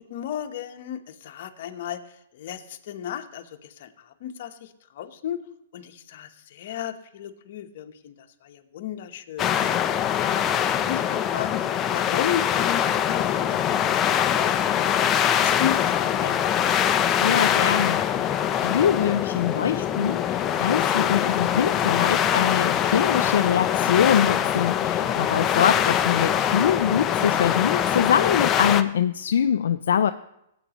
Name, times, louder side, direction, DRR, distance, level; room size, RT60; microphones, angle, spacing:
voice 1, 0.0-5.4 5.7-8.1 8.4-9.5 10.1-14.9 15.3-16.4, left 10 dB, 55° left, 7 dB, 0.9 m, -34 dB
sound 1, 9.4-28.8, left 9 dB, 20° left, 0.5 m, -23 dB
voice 2, 17.2-30.1, left 8 dB, 80° left, 8 dB, 0.4 m, -24 dB
17.5 x 8.1 x 3.0 m, 0.80 s
hypercardioid pair, 145°, 0 cm